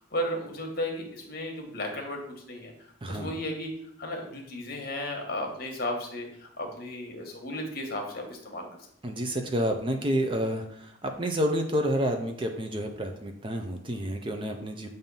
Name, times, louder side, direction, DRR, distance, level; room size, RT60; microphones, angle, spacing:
voice 1, 0.1-2.7 3.1-3.7 4.0-8.7, left 1 dB, 50° left, 2 dB, 1.2 m, -34 dB
voice 2, 3.0-3.4 9.0-14.9, equal, 25° right, 4 dB, 0.5 m, -29 dB
7.3 x 2.7 x 5.3 m, 0.70 s
head